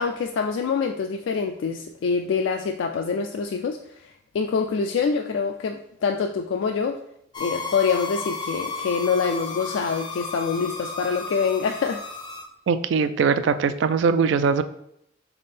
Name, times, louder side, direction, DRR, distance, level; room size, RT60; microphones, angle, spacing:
voice 1, 0.0-3.8 4.3-7.0 7.4-12.0, left 5 dB, 85° left, 4 dB, 0.3 m, -25 dB
sound 1, 7.3-12.4, left 4 dB, 25° left, 0.5 m, -33 dB
voice 2, 12.7-14.6, right 5 dB, 75° right, 12 dB, 0.3 m, -21 dB
3.6 x 3.5 x 4.1 m, 0.75 s
head